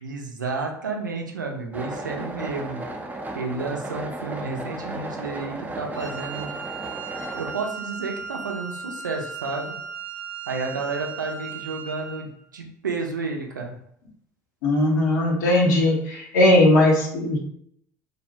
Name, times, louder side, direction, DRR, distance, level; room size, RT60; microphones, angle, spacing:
voice 1, 0.0-2.8 3.3-6.6 7.3-9.8 10.5-13.7, right 4 dB, 85° right, 2 dB, 0.4 m, -31 dB
sound 1, 1.7-7.5, right 2 dB, 15° right, 0.4 m, -34 dB
Wind instrument woodwind instrument, 5.9-12.3, right 6 dB, 85° left, 1.1 m, -36 dB
voice 2, 14.6-17.4, left 1 dB, 70° left, -1 dB, 0.7 m, -19 dB
2.6 x 2.1 x 2.6 m, 0.72 s
figure-of-eight pair, 60°, 10 cm